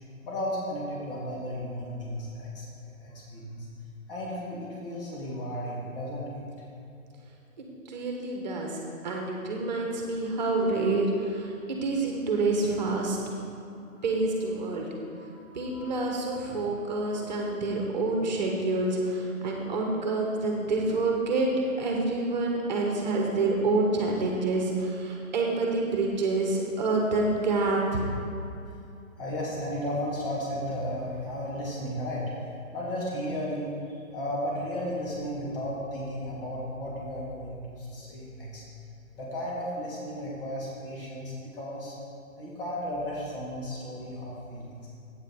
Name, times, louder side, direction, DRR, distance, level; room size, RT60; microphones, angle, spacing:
voice 1, 0.2-3.7 4.1-6.4 13.8-14.0 14.6-16.2 16.5-17.3 19.6-19.8 29.2-38.6 39.1-41.9 42.4-44.9, equal, 40° left, -5 dB, 2.4 m, -35 dB
voice 2, 7.6-11.5 11.8-13.2 14.0-14.9 15.5-21.5 21.8-28.1, right 2 dB, 30° right, 0 dB, 1.3 m, -27 dB
8.7 x 7.4 x 5.6 m, 2.6 s
figure-of-eight pair, 150°, 42 cm